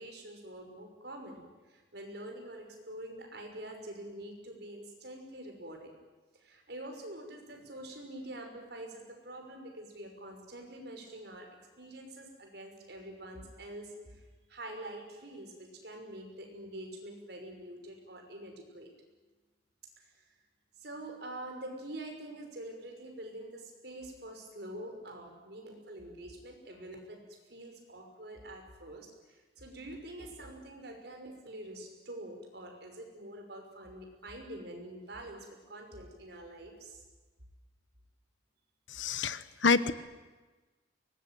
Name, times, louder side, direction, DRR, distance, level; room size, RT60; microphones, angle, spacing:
voice 1, 0.0-5.9 6.3-11.5 11.8-18.9 20.0-20.2 20.8-27.2 27.5-37.0, right 1 dB, 60° right, 3 dB, 6.0 m, -46 dB
voice 2, 38.9-39.9, left 4 dB, 85° left, 15 dB, 1.2 m, -27 dB
24.0 x 20.5 x 9.4 m, 1.2 s
head